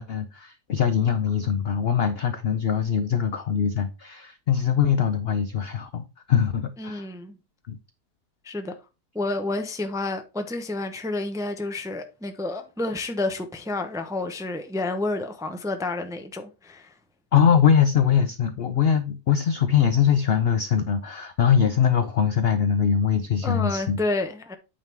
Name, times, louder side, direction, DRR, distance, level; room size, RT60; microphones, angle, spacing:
voice 1, 0.0-7.1 7.7-7.8 17.3-24.0, left 8 dB, 75° left, 0.5 m, -22 dB
voice 2, 6.8-7.4 8.4-8.8 9.1-16.9 23.4-24.5, left 2 dB, 5° right, 0.4 m, -30 dB
8.8 x 3.7 x 4.4 m
omnidirectional pair, 1.7 m